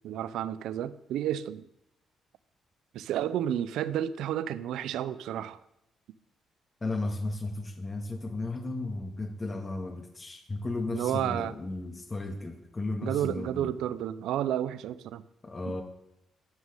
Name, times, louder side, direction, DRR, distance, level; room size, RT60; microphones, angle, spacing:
voice 1, 0.0-1.7 2.9-5.6 10.9-11.5 13.0-15.2 15.7-15.8, right 11 dB, 85° right, 16 dB, 0.7 m, -31 dB
voice 2, 6.8-13.7 15.4-15.8, left 2 dB, 25° left, 5 dB, 1.9 m, -34 dB
12.5 x 6.4 x 9.2 m, 0.82 s
cardioid pair, 90°, 0 cm